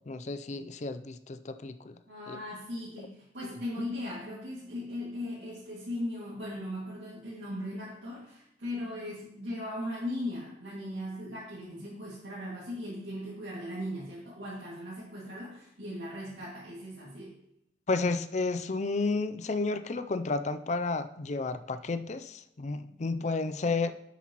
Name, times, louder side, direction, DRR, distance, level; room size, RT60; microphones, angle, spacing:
voice 1, 0.1-2.0 2.3-2.4 17.9-23.9, left 3 dB, 40° left, 11 dB, 0.4 m, -32 dB
voice 2, 2.1-17.4, left 1 dB, 80° right, -8 dB, 2.3 m, -38 dB
10.0 x 8.1 x 3.0 m, 0.79 s
head